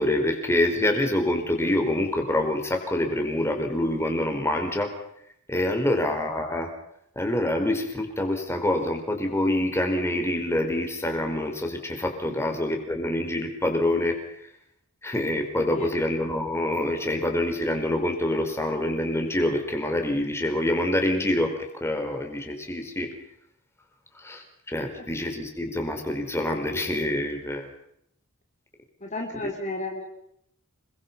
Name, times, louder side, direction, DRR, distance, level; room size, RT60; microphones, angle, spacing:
voice 1, 0.0-4.9 5.5-6.7 7.1-14.2 15.0-21.5 21.8-23.1 24.1-27.7, left 1 dB, 10° left, 4 dB, 4.7 m, -26 dB
voice 2, 29.0-30.0, left 2 dB, 35° left, 2 dB, 3.5 m, -34 dB
29.0 x 22.0 x 5.6 m, 0.73 s
head